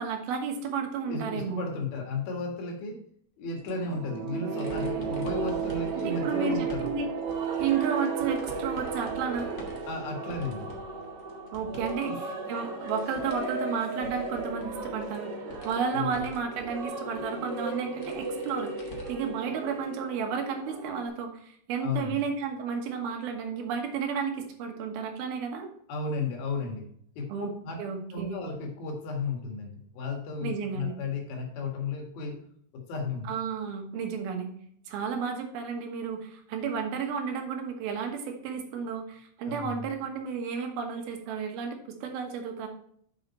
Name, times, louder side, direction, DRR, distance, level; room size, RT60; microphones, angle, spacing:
voice 1, 0.0-1.6 6.0-7.1 7.6-9.6 11.5-15.3 15.6-25.7 27.3-27.5 27.8-28.4 30.4-30.9 33.2-34.5 34.9-42.7, right 6 dB, 90° right, 4 dB, 3.2 m, -32 dB
voice 2, 1.1-3.0 3.4-6.9 9.9-10.7 12.0-12.2 15.9-16.2 21.8-22.2 25.9-26.8 27.2-27.3 27.6-27.8 28.1-32.4 32.7-33.3 39.5-39.9, left 3 dB, 80° left, 2 dB, 3.6 m, -34 dB
sound 1, 3.5-12.0 12.3-19.3 19.7-19.9 21.1-21.2, left 1 dB, 55° left, 1.0 m, -48 dB
sound 2, 3.6-12.2, right 9 dB, 75° right, 2.6 m, -35 dB
sound 3, 4.5-21.1, right 2 dB, 55° right, 1.7 m, -37 dB
7.7 x 6.5 x 4.2 m, 0.65 s
omnidirectional pair, 4.2 m